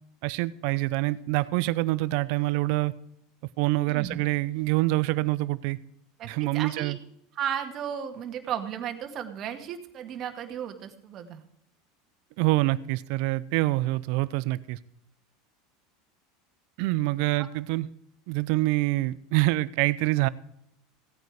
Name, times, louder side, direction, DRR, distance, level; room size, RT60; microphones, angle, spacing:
voice 1, 0.2-2.9 3.6-5.8 6.2-7.0 12.4-14.8 16.8-17.9 18.3-20.3, right 19 dB, 65° right, 18 dB, 0.6 m, -26 dB
voice 2, 3.9-4.2 6.2-6.9 7.3-11.4 17.4-17.5, right 9 dB, 45° right, 5 dB, 2.1 m, -34 dB
16.5 x 9.2 x 4.9 m, 0.75 s
hypercardioid pair, 90°, 0 cm